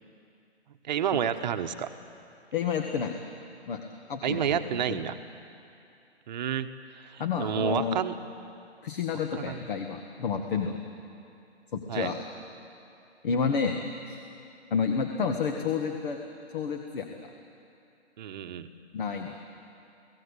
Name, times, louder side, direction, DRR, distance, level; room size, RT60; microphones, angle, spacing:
voice 1, 0.8-1.9 4.2-5.2 6.3-6.7 7.0-8.1 9.4-9.6 11.9-12.1 18.2-18.7, right 9 dB, 40° right, 8 dB, 1.2 m, -30 dB
voice 2, 2.5-3.1 3.7-3.8 4.1-5.0 7.2-8.0 8.8-10.8 11.7-12.2 13.2-13.8 14.1-14.2 14.7-16.2 16.5-17.1 18.9-19.3, left 6 dB, 50° left, 5 dB, 1.8 m, -30 dB
29.0 x 17.5 x 8.3 m, 2.6 s
hypercardioid pair, 145°, 33 cm